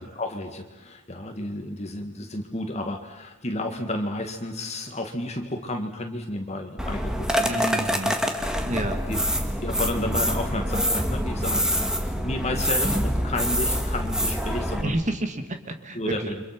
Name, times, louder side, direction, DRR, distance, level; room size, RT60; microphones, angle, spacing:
voice 1, 0.0-7.6 9.1-9.2 9.6-15.0 15.9-16.4, left 1 dB, 30° left, 4 dB, 2.1 m, -32 dB
sound 1, 6.8-14.8, equal, 5° right, 2.0 m, -25 dB
voice 2, 7.4-8.2 8.6-9.0 14.8-16.3, right 1 dB, 35° right, 6 dB, 1.9 m, -29 dB
30.0 x 25.5 x 6.1 m, 1.0 s
head